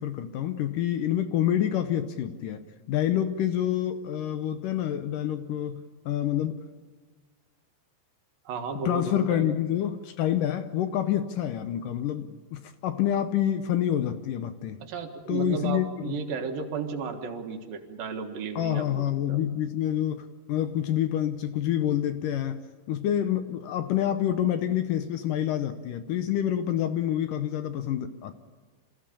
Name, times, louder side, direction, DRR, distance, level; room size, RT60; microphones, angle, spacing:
voice 1, 0.0-2.6 2.9-6.6 8.9-14.8 15.3-16.2 18.6-22.6 22.9-28.3, left 11 dB, 75° left, 9 dB, 2.2 m, -27 dB
voice 2, 8.4-9.5 14.8-19.4, right 5 dB, 70° right, 4 dB, 3.3 m, -34 dB
27.0 x 15.0 x 8.6 m, 1.4 s
omnidirectional pair, 4.3 m